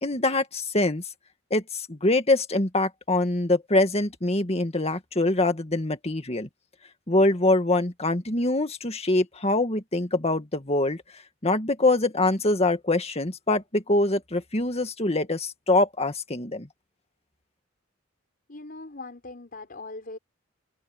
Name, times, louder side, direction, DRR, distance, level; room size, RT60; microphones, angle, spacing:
voice 1, 0.0-1.0 1.5-6.5 7.1-11.0 11.4-16.7, left 2 dB, 30° left, 2.1 m, -24 dB
voice 2, 18.5-20.2, left 2 dB, 50° left, 5.0 m, -40 dB
open air
head